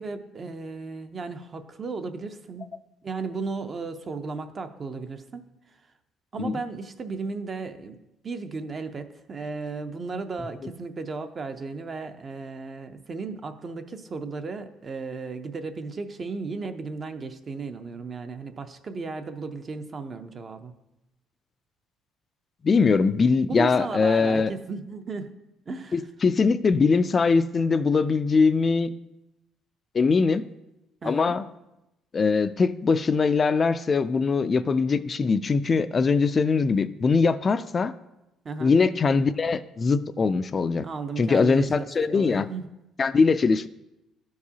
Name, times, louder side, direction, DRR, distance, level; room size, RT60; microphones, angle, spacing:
voice 1, 0.0-2.7 3.0-5.5 6.3-8.0 8.2-20.7 23.5-25.3 25.7-26.0 31.0-31.4 38.4-38.7 40.8-42.7, right 4 dB, 35° right, 8 dB, 0.5 m, -35 dB
voice 2, 22.6-24.5 25.9-28.9 29.9-30.4 31.0-31.4 32.1-37.9 38.6-40.8 41.2-42.5 43.0-43.7, left 4 dB, 30° left, 13 dB, 0.3 m, -22 dB
13.0 x 4.7 x 2.8 m, 0.92 s
cardioid pair, 120°, 0 cm